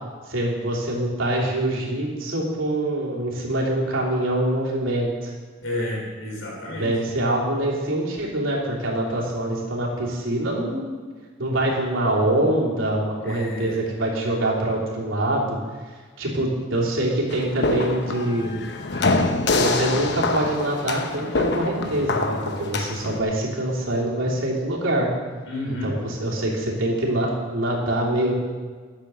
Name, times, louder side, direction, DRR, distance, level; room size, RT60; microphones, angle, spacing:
voice 1, 0.3-5.3 6.7-11.0 11.4-15.6 16.2-18.5 19.5-25.1 25.8-28.4, right 1 dB, 85° right, -4 dB, 3.0 m, -24 dB
voice 2, 5.6-6.9 13.2-13.8 25.5-25.9, left 1 dB, 85° left, -2 dB, 4.1 m, -30 dB
sound 1, 17.3-23.2, left 2 dB, 60° left, 0.9 m, -25 dB
11.0 x 7.6 x 6.7 m, 1.5 s
head